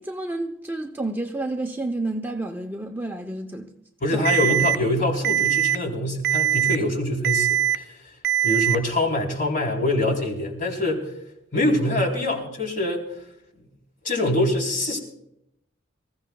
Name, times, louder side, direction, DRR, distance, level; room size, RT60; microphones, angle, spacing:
voice 1, 0.0-3.7 4.1-4.2, right 2 dB, 10° right, 0.7 m, -30 dB
voice 2, 4.0-8.0 8.4-11.1 11.5-13.0 14.0-15.0, left 1 dB, 40° left, 3.7 m, -24 dB
Alarm, 4.2-4.7 5.2-5.7 6.2-6.7 7.2-7.7 8.2-8.7, right 11 dB, 50° right, 0.5 m, -21 dB
25.5 x 15.0 x 2.3 m
head